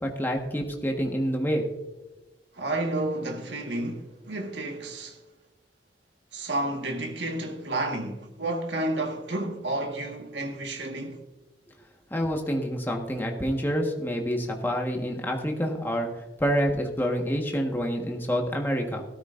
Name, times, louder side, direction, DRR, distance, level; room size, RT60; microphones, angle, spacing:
voice 1, 0.0-1.7 12.1-19.0, equal, 10° left, 1.5 m, -27 dB
voice 2, 2.5-5.2 6.3-11.2, right 2 dB, 75° right, 1.7 m, -31 dB
17.5 x 13.0 x 2.6 m
head